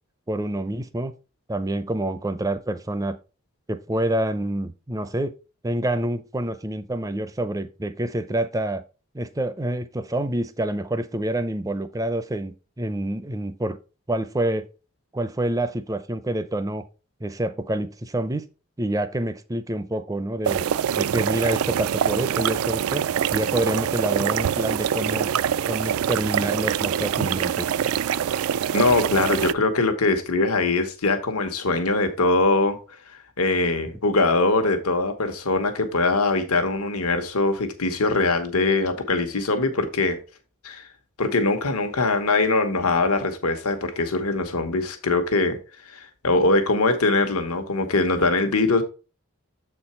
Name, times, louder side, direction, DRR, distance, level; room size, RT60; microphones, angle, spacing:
voice 1, 0.3-1.1 1.5-3.2 3.7-5.3 5.6-8.8 9.1-13.8 14.1-14.7 15.1-16.9 17.2-18.5 18.8-20.7 20.9-23.0 23.3-25.3 25.7-27.7, right 1 dB, 15° right, 0.5 m, -27 dB
sound 1, 20.4-29.5, right 9 dB, 75° right, 0.3 m, -24 dB
voice 2, 28.7-32.8 33.4-40.2 40.6-40.9 41.2-45.6 45.9-48.8, left 3 dB, 85° left, 1.2 m, -22 dB
7.4 x 4.4 x 4.2 m
head